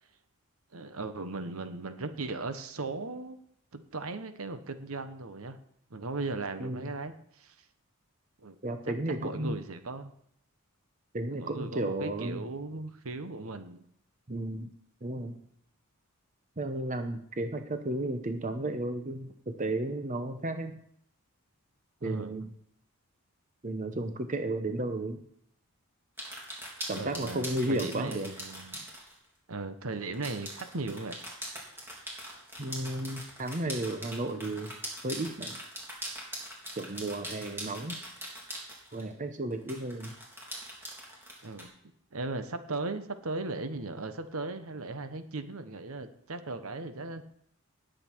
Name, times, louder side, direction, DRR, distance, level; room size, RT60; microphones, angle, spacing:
voice 1, 0.7-3.4 3.7-5.6 5.9-7.5 8.4-8.6 8.9-9.0 9.2-10.1 11.3-13.8 22.0-22.4 26.9-28.8 29.5-31.2 41.4-41.7 42.1-47.2, right 3 dB, 70° right, 10 dB, 1.1 m, -37 dB
voice 2, 6.6-6.9 8.6-9.6 11.1-12.4 14.3-14.7 15.0-15.4 16.6-20.8 22.0-22.5 23.6-25.2 26.9-28.3 32.6-34.8 35.0-35.6 36.7-38.0 38.9-40.1, right 1 dB, 35° right, 8 dB, 0.9 m, -33 dB
sound 1, 26.2-29.1 30.1-39.1 39.7-41.6, equal, 10° right, 3.5 m, -42 dB
19.0 x 7.8 x 4.6 m, 0.69 s
head